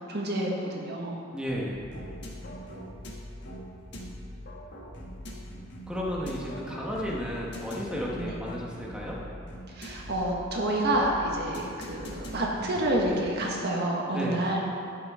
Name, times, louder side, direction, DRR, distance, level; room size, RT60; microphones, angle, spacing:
voice 1, 0.1-1.2 8.2-8.3 9.7-14.6, right 1 dB, 55° right, -2 dB, 1.5 m, -28 dB
voice 2, 1.3-1.8 5.9-9.2 14.1-14.4, equal, 5° right, -4 dB, 1.2 m, -33 dB
sound 1, 1.7-13.1, left 1 dB, 35° left, 1.5 m, -45 dB
sound 2, 1.9-13.7, equal, 55° left, 1.4 m, -44 dB
12.0 x 8.7 x 3.7 m, 2.4 s
head